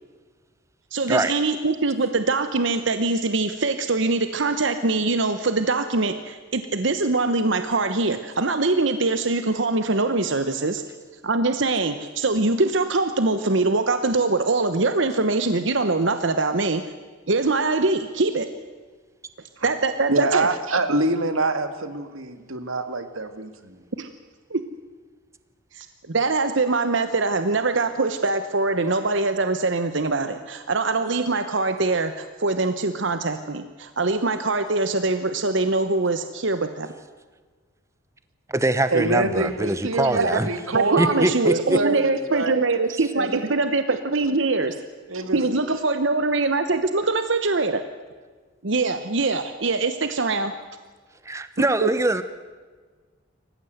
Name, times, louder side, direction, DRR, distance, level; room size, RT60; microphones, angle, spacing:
voice 1, 0.9-10.8 11.2-16.8 17.3-18.5 19.6-20.5 24.0-24.1 24.5-24.6 25.7-36.9 40.0-40.4 40.7-44.8 45.3-47.8 48.6-50.5 51.6-51.9, right 3 dB, 65° right, 9 dB, 1.0 m, -23 dB
voice 2, 20.1-23.8 38.9-42.6 43.1-43.4 43.9-44.0 45.1-45.4, right 2 dB, 90° right, 9 dB, 1.9 m, -25 dB
voice 3, 38.5-40.5 41.0-41.8 51.2-52.2, right 1 dB, 15° right, 12 dB, 0.8 m, -23 dB
27.0 x 15.5 x 8.0 m, 1.4 s
head